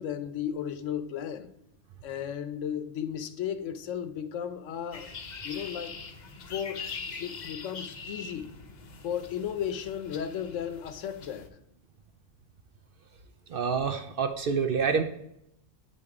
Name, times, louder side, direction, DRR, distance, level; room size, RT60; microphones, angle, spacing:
voice 1, 0.0-1.5 2.0-5.2 5.4-6.0 6.5-6.9 7.2-8.5 9.0-11.6, left 9 dB, 75° left, 11 dB, 1.1 m, -34 dB
sound 1, 4.9-11.5, left 5 dB, 45° left, 0.7 m, -42 dB
voice 2, 13.5-15.0, right 6 dB, 60° right, 7 dB, 0.6 m, -27 dB
8.6 x 4.1 x 4.8 m, 0.78 s
omnidirectional pair, 1.3 m